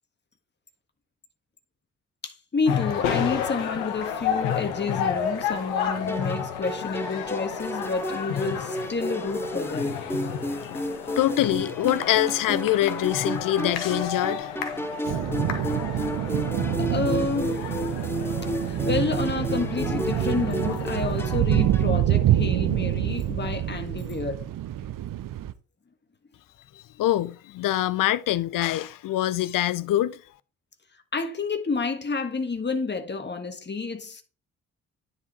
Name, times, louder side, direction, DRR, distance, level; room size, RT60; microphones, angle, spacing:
voice 1, 2.2-10.0 16.8-17.9 18.8-24.5 31.1-34.2, left 4 dB, 25° left, 1.6 m, -29 dB
sound 1, 2.7-21.4, left 8 dB, 80° left, 1.3 m, -32 dB
sound 2, 6.1-22.0, equal, 5° left, 1.4 m, -33 dB
voice 2, 11.2-14.5 27.0-30.2, left 14 dB, 55° left, 0.7 m, -24 dB
sound 3, 15.1-25.5, right 12 dB, 55° right, 0.8 m, -26 dB
9.7 x 4.8 x 4.2 m
hypercardioid pair, 40°, 38 cm